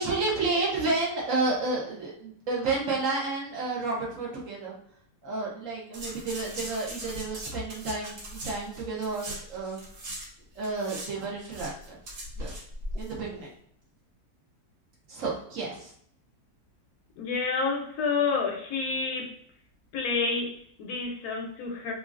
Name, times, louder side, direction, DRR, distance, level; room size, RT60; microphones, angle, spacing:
voice 1, 0.0-4.7 5.2-9.8 10.6-12.0 12.4-12.5 13.0-13.5 15.1-15.9, right 3 dB, 60° right, -3 dB, 1.0 m, -31 dB
sound 1, 5.9-10.3 10.5-13.1 13.4-13.5, equal, 80° right, 1.6 m, -39 dB
voice 2, 17.2-19.4 19.9-21.9, left 4 dB, 75° left, 2 dB, 1.1 m, -29 dB
3.0 x 2.7 x 2.3 m, 0.64 s
omnidirectional pair, 1.7 m